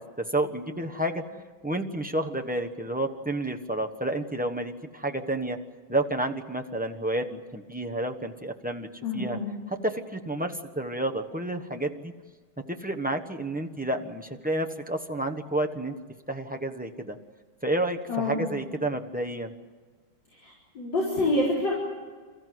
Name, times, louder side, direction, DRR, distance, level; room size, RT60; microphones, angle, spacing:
voice 1, 0.0-5.6 5.9-9.4 9.7-12.1 12.7-15.9 16.3-17.2 17.6-19.5, right 1 dB, 10° right, 2 dB, 0.6 m, -30 dB
voice 2, 9.0-9.5 18.1-18.4 20.4-21.7, left 2 dB, 55° left, -5 dB, 5.2 m, -27 dB
28.5 x 14.5 x 9.4 m, 1.5 s
omnidirectional pair, 2.3 m